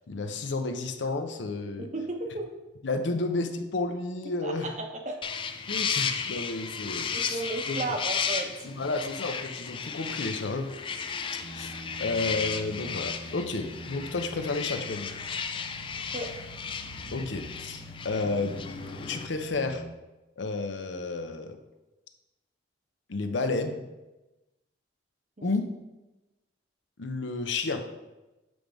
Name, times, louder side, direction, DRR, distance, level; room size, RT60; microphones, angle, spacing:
voice 1, 0.1-1.9 2.8-4.7 5.7-7.4 7.7-7.8 8.6-10.7 11.5-11.7 12.0-15.1 17.1-18.6 19.0-19.8 20.4-21.6 23.1-23.8 25.4-25.6 27.0-27.8, left 3 dB, 75° left, 7 dB, 0.6 m, -31 dB
voice 2, 1.8-2.5 4.4-5.2 7.1-8.5 16.1-16.3 25.4-25.5, right 2 dB, 40° right, 3 dB, 0.8 m, -34 dB
sound 1, 5.2-19.3, left 6 dB, 25° left, 0.3 m, -34 dB
sound 2, 11.4-20.0, right 2 dB, 90° right, 0.7 m, -46 dB
7.8 x 3.4 x 5.1 m, 1.0 s
head